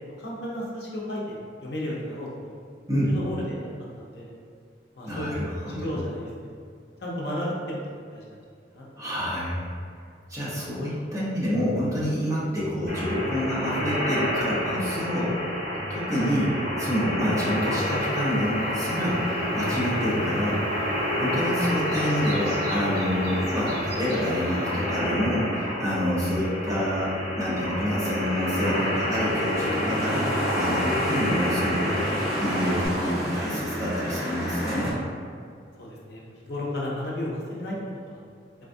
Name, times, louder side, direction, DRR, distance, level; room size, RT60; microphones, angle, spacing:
voice 1, 0.2-2.3 3.0-3.7 4.0-4.3 5.0-6.3 7.0-7.7 8.1-8.4 8.7-8.9 16.1-16.3 21.6-21.8 31.3-31.5 35.8-37.8 38.1-38.2, left 1 dB, 60° left, -4 dB, 0.6 m, -33 dB
voice 2, 5.0-5.9 9.0-9.6 10.3-15.4 15.9-32.0 32.4-34.9, equal, 20° right, -9 dB, 0.8 m, -27 dB
sound 1, 12.9-32.9, equal, 35° right, 1.3 m, -29 dB
sound 2, 17.3-24.9, right 1 dB, 65° right, 0.9 m, -43 dB
sound 3, 28.2-34.9, equal, ahead, 1.1 m, -31 dB
4.0 x 2.3 x 2.5 m, 2.2 s
head